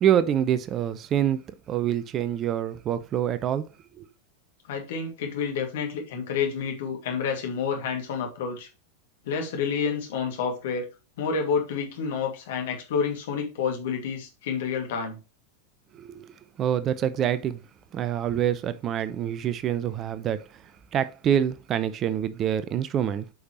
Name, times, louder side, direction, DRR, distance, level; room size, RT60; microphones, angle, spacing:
voice 1, 0.0-1.4 1.7-3.7 4.0-4.1 15.9-16.3 16.6-17.6 17.9-20.4 20.9-23.3, right 10 dB, 30° right, 0.6 m, -26 dB
voice 2, 4.7-8.7 9.3-10.9 11.2-15.2, left 6 dB, 55° left, 2.3 m, -29 dB
8.0 x 5.3 x 3.1 m
figure-of-eight pair, 90°, 0 cm